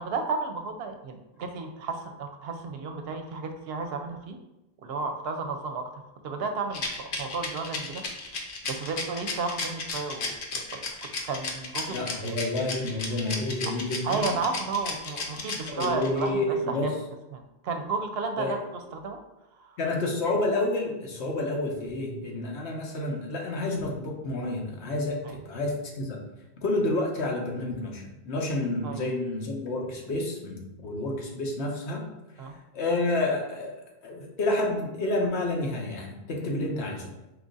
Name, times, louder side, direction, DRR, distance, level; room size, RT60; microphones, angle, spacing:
voice 1, 0.0-4.4 4.8-8.0 8.6-12.4 14.0-16.4 16.7-17.0 17.3-18.6 18.9-19.2 19.6-19.7 25.2-25.3 28.8-29.0 32.4-32.5, right 4 dB, 70° right, 6 dB, 0.8 m, -33 dB
Rattle, 6.7-16.3, left 4 dB, 55° left, 0.8 m, -33 dB
voice 2, 11.9-14.2 15.3-16.9 18.4-18.5 19.8-26.2 26.6-32.0 32.7-33.7 34.0-37.1, left 2 dB, 80° left, 0 dB, 1.1 m, -29 dB
4.8 x 2.4 x 3.8 m, 0.97 s
omnidirectional pair, 1.1 m